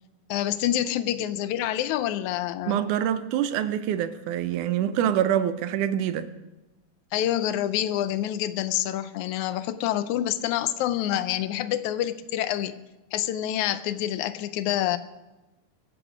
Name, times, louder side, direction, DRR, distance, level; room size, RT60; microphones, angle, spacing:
voice 1, 0.3-2.8 7.1-12.8 13.1-15.0, left 12 dB, 80° left, 2.0 m, -27 dB
voice 2, 2.7-6.3, right 10 dB, 90° right, 2.3 m, -25 dB
23.5 x 8.1 x 5.0 m
omnidirectional pair, 3.5 m